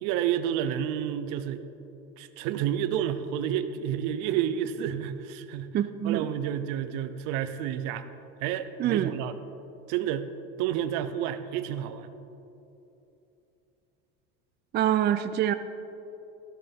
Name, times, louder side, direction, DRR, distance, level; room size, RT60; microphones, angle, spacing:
voice 1, 0.0-1.6 2.2-5.7 6.0-8.1 8.4-9.3 9.9-10.3 10.6-12.1, right 10 dB, 75° right, 11 dB, 0.8 m, -30 dB
voice 2, 5.7-6.3 8.8-9.1 14.7-15.5, right 11 dB, 35° right, 11 dB, 0.5 m, -25 dB
14.0 x 12.0 x 3.6 m, 2.9 s
supercardioid pair, 110°, 30 cm